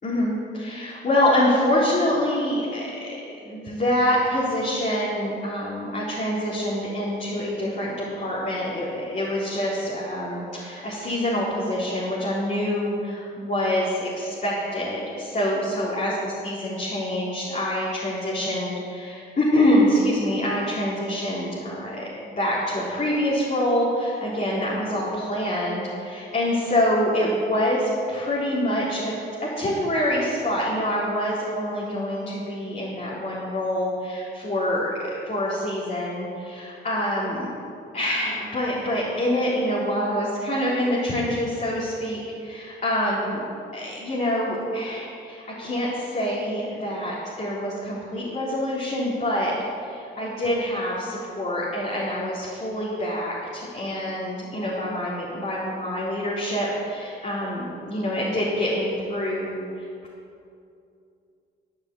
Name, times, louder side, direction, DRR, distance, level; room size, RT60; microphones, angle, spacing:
voice 1, 0.0-29.1 29.4-34.9 35.2-37.5 37.9-43.4 43.7-49.5 49.8-59.6, left 1 dB, 40° left, -7 dB, 3.9 m, -26 dB
14.0 x 8.9 x 8.5 m, 2.6 s
cardioid pair, 90°, 20 cm